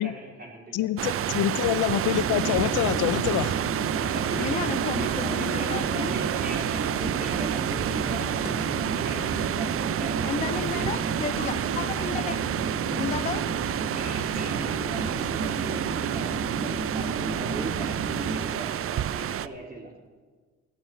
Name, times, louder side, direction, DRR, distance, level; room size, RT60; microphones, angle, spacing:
voice 1, 0.0-0.9 3.9-11.1 13.6-19.9, right 2 dB, 30° right, -2 dB, 4.0 m, -39 dB
voice 2, 0.7-3.6, left 13 dB, 85° left, 14 dB, 0.5 m, -26 dB
sound 1, 1.0-19.5, right 11 dB, 50° right, 0.5 m, -30 dB
Conversation / Chatter / Fixed-wing aircraft airplane, 2.0-18.7, right 4 dB, 70° right, 1.9 m, -32 dB
voice 3, 4.3-6.1 8.2-8.5 10.2-13.4, left 7 dB, 25° left, 14 dB, 0.4 m, -33 dB
15.5 x 8.6 x 7.2 m, 1.4 s
cardioid pair, 90°, 30 cm